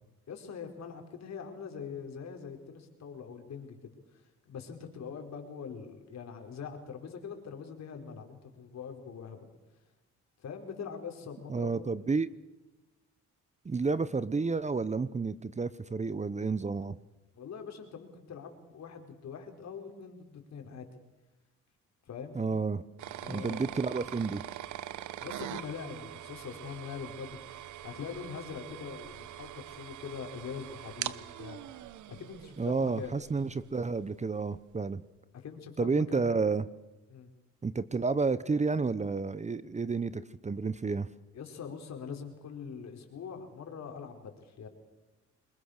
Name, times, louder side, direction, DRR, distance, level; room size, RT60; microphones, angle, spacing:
voice 1, 0.3-9.4 10.4-12.0 17.3-20.9 22.1-22.4 23.2-23.7 25.2-27.4 27.8-31.6 32.1-33.2 35.3-36.2 37.1-37.3 41.3-44.7, left 6 dB, 60° left, 4 dB, 4.9 m, -43 dB
voice 2, 11.5-12.3 13.6-17.0 22.3-22.8 23.3-24.4 32.6-35.0 35.8-36.7 37.6-41.1, right 4 dB, 25° right, 15 dB, 0.9 m, -30 dB
sound 1, 23.0-33.8, right 12 dB, 75° right, 1.0 m, -43 dB
26.5 x 22.0 x 6.7 m, 1.1 s
cardioid pair, 90°, 30 cm